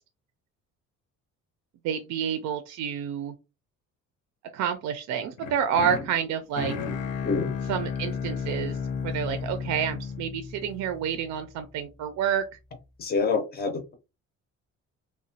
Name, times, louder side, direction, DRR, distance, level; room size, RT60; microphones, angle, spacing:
voice 1, 1.8-3.3 4.5-6.7 7.6-8.8 9.0-12.5, right 8 dB, 70° right, 0.4 m, -29 dB
sound 1, 5.4-11.5, left 6 dB, 80° left, 0.7 m, -33 dB
voice 2, 7.2-7.6 13.0-13.9, left 4 dB, 30° left, 0.5 m, -27 dB
3.0 x 2.1 x 2.7 m
cardioid pair, 160°, 30 cm